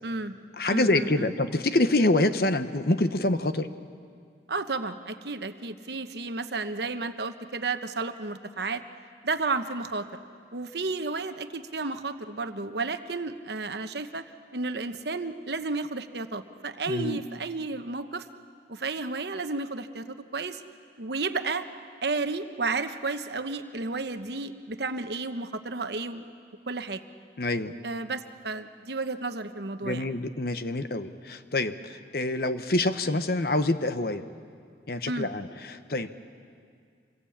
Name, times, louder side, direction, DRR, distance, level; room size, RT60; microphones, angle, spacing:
voice 1, 0.0-0.3 0.7-1.3 4.5-8.8 9.2-10.1 10.5-14.2 14.5-18.3 18.7-20.6 21.0-21.7 22.0-26.2 26.7-27.0 27.8-30.1 35.1-35.3, right 3 dB, 65° right, 9 dB, 1.1 m, -32 dB
voice 2, 0.6-3.7 16.9-17.2 27.4-27.7 29.8-34.2 34.9-36.1, left 2 dB, 55° left, 10 dB, 1.0 m, -26 dB
26.0 x 21.0 x 8.7 m, 2.2 s
head